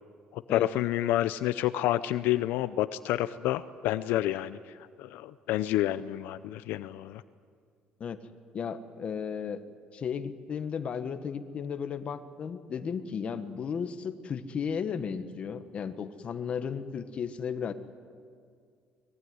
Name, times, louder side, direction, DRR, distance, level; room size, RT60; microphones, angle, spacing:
voice 1, 0.3-7.2, left 14 dB, 85° left, 13 dB, 0.6 m, -29 dB
voice 2, 8.5-9.6 9.9-17.7, left 6 dB, 40° left, 10 dB, 1.4 m, -34 dB
24.5 x 20.5 x 9.5 m, 2.1 s
cardioid pair, 135°, 3 cm